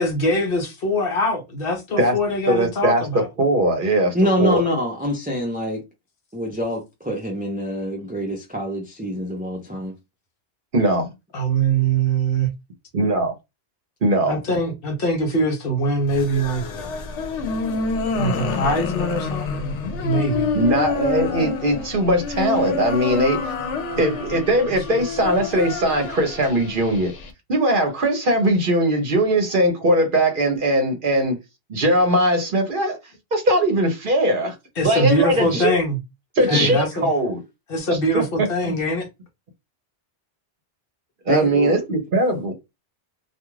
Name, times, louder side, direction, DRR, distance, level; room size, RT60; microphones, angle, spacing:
voice 1, 0.0-3.3 11.3-12.5 14.3-16.9 18.1-19.5 20.0-20.8 34.8-36.0 36.5-37.1 37.7-39.1, right 1 dB, 60° left, 0.9 m, -23 dB
voice 2, 2.5-4.6 10.7-11.1 12.9-13.3 14.0-14.4 20.5-23.4 24.0-27.1 27.5-31.4 31.7-33.0 33.3-34.5 34.8-35.8 36.4-37.4 38.1-38.7 41.3-42.5, right 1 dB, 55° right, 0.8 m, -20 dB
voice 3, 4.1-5.8 6.3-9.9 35.3-35.6 36.5-36.7 41.3-41.8, equal, 10° right, 0.4 m, -25 dB
sound 1, 16.1-27.3, left 4 dB, 90° left, 0.9 m, -27 dB
2.4 x 2.3 x 3.1 m
omnidirectional pair, 1.2 m